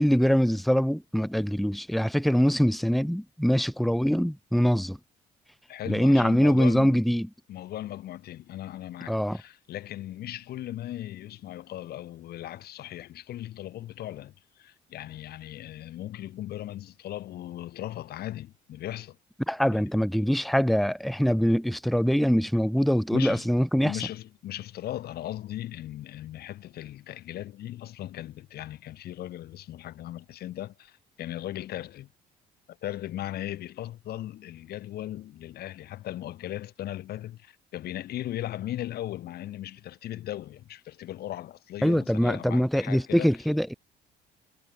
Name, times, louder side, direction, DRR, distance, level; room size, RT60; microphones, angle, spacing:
voice 1, 0.0-5.0 5.9-7.3 9.1-9.4 19.5-24.0 41.8-43.7, equal, ahead, 2.7 m, -23 dB
voice 2, 5.7-7.0 7.5-19.2 19.7-19.8 23.1-23.5 23.8-32.1 32.7-43.3, left 13 dB, 70° left, 6.1 m, -38 dB
cardioid pair, 110°, 17 cm